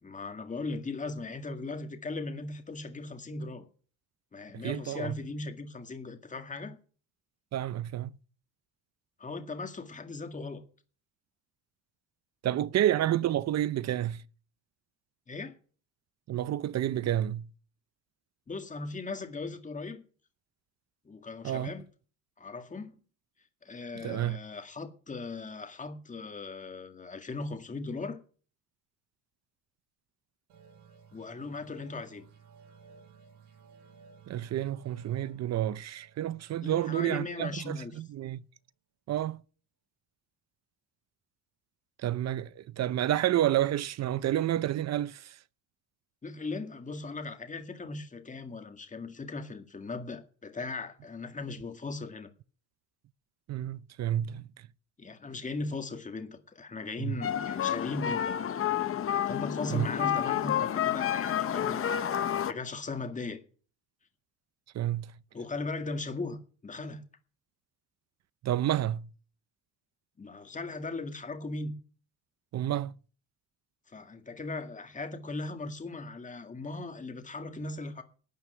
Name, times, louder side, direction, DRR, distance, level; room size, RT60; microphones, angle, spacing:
voice 1, 0.0-3.7 4.3-6.8 9.2-10.6 15.3-15.5 18.5-20.0 21.1-21.8 22.4-23.0 23.6-28.2 31.1-32.3 36.6-37.9 46.2-52.3 55.0-58.4 59.3-63.4 65.3-67.0 70.2-71.8 73.9-78.0, left 3 dB, 20° left, 2.0 m, -38 dB
voice 2, 4.5-5.1 7.5-8.1 12.4-14.2 16.3-17.5 21.4-21.7 23.9-24.4 34.3-38.4 39.1-39.4 42.0-45.4 53.5-54.4 57.0-57.2 59.7-59.9 64.7-65.1 68.4-69.1 72.5-72.9, right 12 dB, 45° right, 0.6 m, -30 dB
sound 1, 30.5-37.8, right 5 dB, 85° right, 6.3 m, -57 dB
sound 2, 57.2-62.5, left 9 dB, 35° left, 0.9 m, -30 dB
12.5 x 9.2 x 6.8 m
cardioid pair, 130°, 38 cm